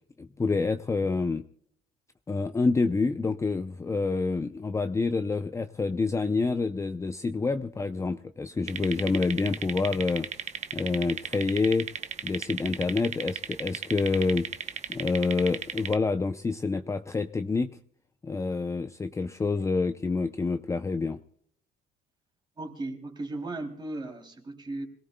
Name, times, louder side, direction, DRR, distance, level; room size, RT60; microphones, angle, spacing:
voice 1, 0.2-1.4 2.3-11.9 12.2-14.5 14.9-17.7 18.2-21.2, left 3 dB, 15° left, 8 dB, 0.6 m, -27 dB
sound 1, 8.7-16.0, right 7 dB, 40° right, 0.9 m, -36 dB
voice 2, 22.6-24.9, right 2 dB, 25° right, 4 dB, 3.0 m, -36 dB
27.0 x 18.0 x 2.2 m, 0.64 s
cardioid pair, 110°, 17 cm